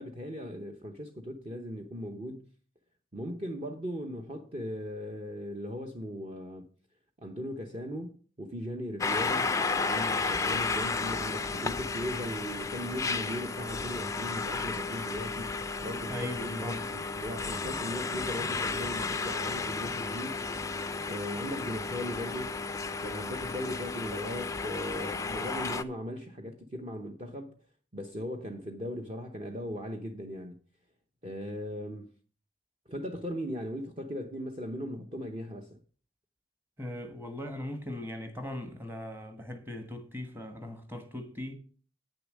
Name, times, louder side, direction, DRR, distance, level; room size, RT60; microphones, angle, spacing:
voice 1, 0.0-2.5 3.1-6.7 7.2-9.5 9.8-20.4 21.1-22.6 23.0-27.5 27.9-30.6 31.2-32.1 32.9-35.8, equal, 25° right, 0.8 m, -38 dB
sound 1, 9.0-25.8, left 4 dB, 15° left, 0.3 m, -33 dB
voice 2, 16.0-16.8 36.8-41.5, left 1 dB, 10° right, 1.2 m, -39 dB
8.9 x 6.8 x 6.2 m
head